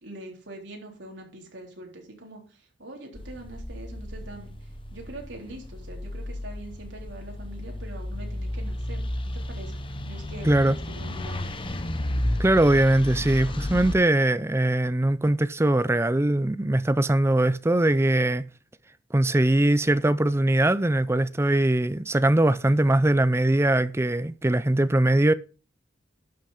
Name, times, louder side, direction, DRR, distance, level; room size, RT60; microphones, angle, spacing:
voice 1, 0.0-2.4 2.8-4.5 4.9-9.1 9.3-9.8 10.1-11.5, right 1 dB, 80° right, 3.7 m, -43 dB
sound 1, 3.1-13.9, left 1 dB, 30° left, 1.0 m, -33 dB
voice 2, 10.4-10.8 12.4-18.5 19.1-25.3, right 1 dB, 15° right, 0.5 m, -21 dB
11.5 x 6.3 x 5.0 m
head